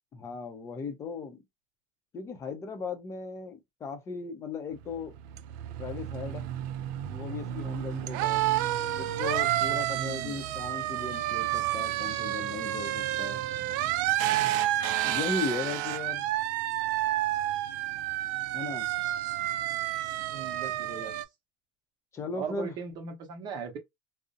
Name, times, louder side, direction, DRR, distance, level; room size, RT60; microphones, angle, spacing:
voice 1, 0.1-1.4 2.1-5.1 5.8-6.5 7.1-8.5 9.0-13.4 15.0-16.3 18.5-18.9 22.1-22.7, left 4 dB, 25° left, 0.6 m, -37 dB
sound 1, 4.8-21.2, right 14 dB, 70° right, 0.4 m, -30 dB
voice 2, 9.9-10.4 20.3-21.1 22.3-23.8, right 6 dB, 45° right, 0.8 m, -39 dB
2.5 x 2.0 x 2.5 m
supercardioid pair, 135°, 11 cm